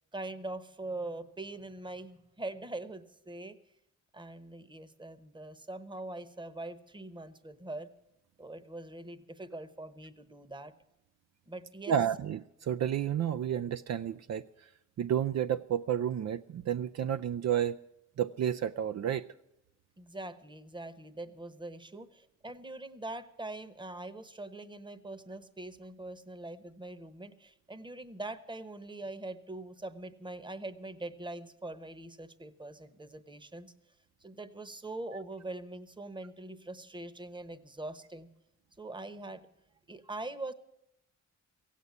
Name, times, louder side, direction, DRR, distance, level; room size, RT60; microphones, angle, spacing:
voice 1, 0.0-3.6 4.1-7.9 8.4-10.7 11.5-11.9 20.0-33.7 34.2-38.3 38.8-39.5 39.9-40.5, right 2 dB, 15° right, 14 dB, 1.0 m, -43 dB
voice 2, 11.9-14.4 15.0-17.8 18.2-19.3, right 9 dB, 60° right, 9 dB, 0.5 m, -31 dB
16.0 x 8.4 x 9.5 m, 0.81 s
cardioid pair, 85°, 30 cm